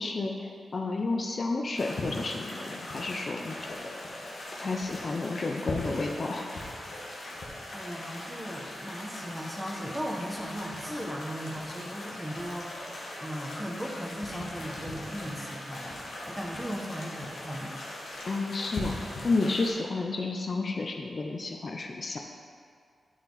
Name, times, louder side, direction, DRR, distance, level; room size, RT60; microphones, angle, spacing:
voice 1, 0.0-4.0 4.6-6.5 18.2-19.0 19.2-22.2, left 3 dB, 55° left, 2 dB, 0.6 m, -31 dB
sound 1, 1.7-19.7, left 1 dB, 70° left, 1.6 m, -40 dB
voice 2, 7.7-17.7, equal, 10° right, -1 dB, 1.3 m, -37 dB
10.0 x 4.5 x 4.0 m, 2.2 s
cardioid pair, 60°, 0 cm